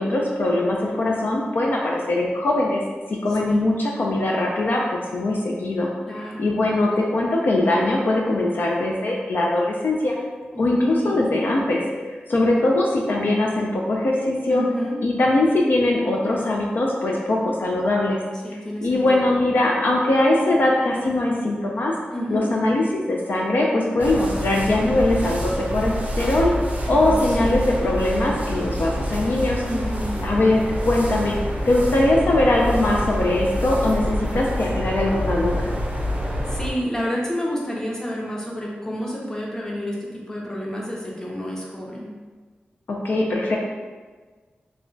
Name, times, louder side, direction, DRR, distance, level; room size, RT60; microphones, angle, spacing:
voice 1, 0.0-2.8 3.1-5.9 6.4-10.2 10.6-14.6 15.0-18.2 18.8-21.9 22.3-26.5 26.9-29.6 30.2-31.3 31.7-35.7 42.9-43.6, left 2 dB, 65° left, -2 dB, 0.4 m, -21 dB
voice 2, 6.1-6.5 10.5-11.2 14.5-15.0 18.4-19.3 22.1-22.5 26.9-27.6 29.7-30.2 36.5-42.1, equal, 15° left, -3 dB, 0.6 m, -29 dB
sound 1, 24.0-36.7, equal, 40° right, 0.5 m, -27 dB
2.2 x 2.1 x 3.7 m, 1.4 s
wide cardioid pair, 95°, 4 cm